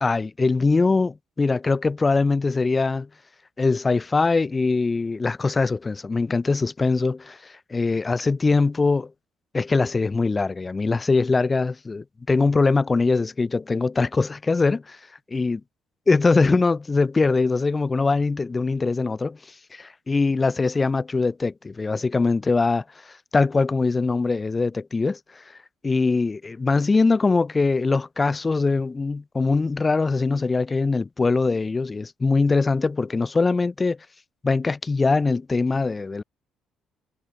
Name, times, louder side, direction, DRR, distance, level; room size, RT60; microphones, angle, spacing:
voice 1, 0.0-3.1 3.6-9.1 9.5-15.0 15.3-15.6 16.1-19.4 19.7-25.4 25.8-34.0 34.4-36.2, left 3 dB, 30° left, 0.4 m, -22 dB
hypercardioid pair, 50°, 0 cm